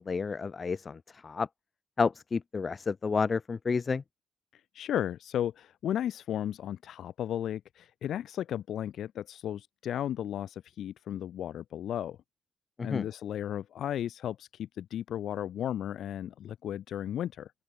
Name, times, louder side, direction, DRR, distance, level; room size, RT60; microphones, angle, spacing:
voice 1, 0.0-1.5 2.0-4.0 12.8-13.1, left 5 dB, 35° left, 0.4 m, -30 dB
voice 2, 4.7-12.2 12.8-17.5, left 10 dB, 80° left, 1.3 m, -34 dB
open air
cardioid pair, 120°, 0 cm